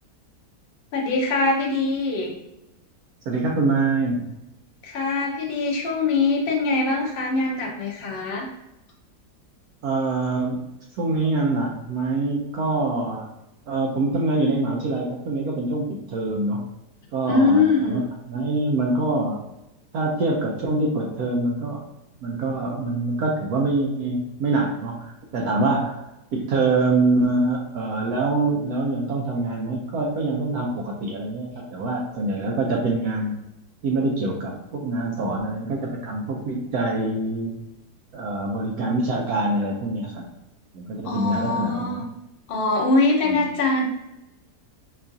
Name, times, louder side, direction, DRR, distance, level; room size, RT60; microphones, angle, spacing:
voice 1, 0.9-2.3 4.8-8.5 17.2-18.0 41.0-42.1 42.5-43.8, left 3 dB, 85° left, -1 dB, 0.5 m, -22 dB
voice 2, 3.3-4.3 9.8-10.6 10.9-13.3 13.7-16.6 17.1-19.4 19.9-21.8 22.2-26.0 26.3-33.4 33.8-37.6 38.1-40.2 40.7-42.0 43.2-43.5, right 2 dB, 75° right, 0 dB, 1.0 m, -25 dB
5.4 x 2.3 x 2.6 m, 0.92 s
omnidirectional pair, 1.8 m